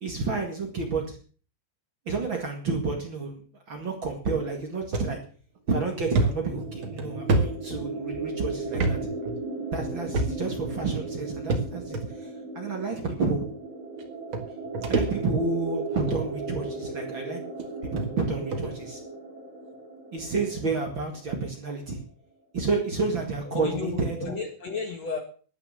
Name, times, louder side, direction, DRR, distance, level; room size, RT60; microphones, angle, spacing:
voice 1, 0.0-1.2 2.0-3.4 3.7-5.2 5.7-9.1 9.7-13.5 14.9-17.4 17.8-19.0 20.1-22.0 22.5-24.3, right 4 dB, 55° right, 2 dB, 1.4 m, -30 dB
sound 1, 4.9-5.1 5.6-5.7 6.1-8.2 8.7-9.0 9.2-9.4 10.1-10.6 11.5-12.0 12.9-13.0 14.0-14.1 14.3-15.5 15.9-16.2 17.0-17.1 17.6-17.7 18.0-18.1 18.5-18.7, right 2 dB, 85° right, 1.1 m, -27 dB
sound 2, 5.9-21.5, right 2 dB, 35° right, 2.6 m, -37 dB
voice 2, 23.4-25.2, left 4 dB, 65° left, 4 dB, 1.6 m, -33 dB
13.0 x 9.5 x 6.6 m, 0.42 s
omnidirectional pair, 5.6 m